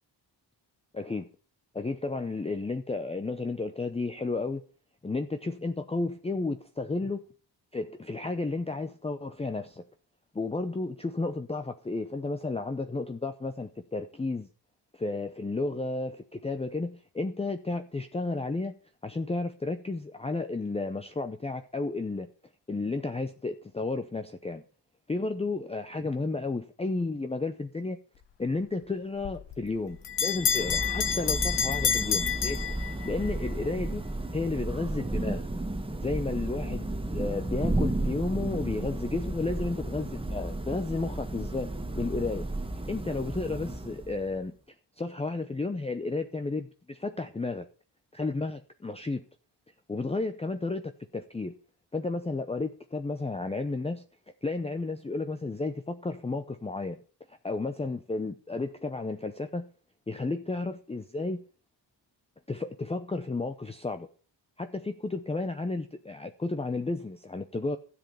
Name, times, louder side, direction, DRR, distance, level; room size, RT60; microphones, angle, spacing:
voice 1, 0.9-1.3 1.7-4.6 5.0-7.2 7.7-9.8 10.3-14.5 14.9-18.7 19.0-22.3 22.7-24.6 25.1-28.0 28.4-34.1 34.3-35.5 36.0-42.5 42.9-44.5 45.0-47.7 48.1-49.2 49.9-51.5 51.9-54.0 54.4-57.0 57.3-59.7 60.1-61.4 62.5-64.1 64.6-67.8, left 3 dB, 15° left, 8 dB, 0.7 m, -32 dB
Bell, 29.2-33.3, left 8 dB, 75° left, 1.4 m, -29 dB
Thunder / Rain, 30.0-44.4, right 1 dB, 10° right, 1.3 m, -33 dB
12.5 x 7.7 x 6.9 m, 0.41 s
cardioid pair, 105°, 43 cm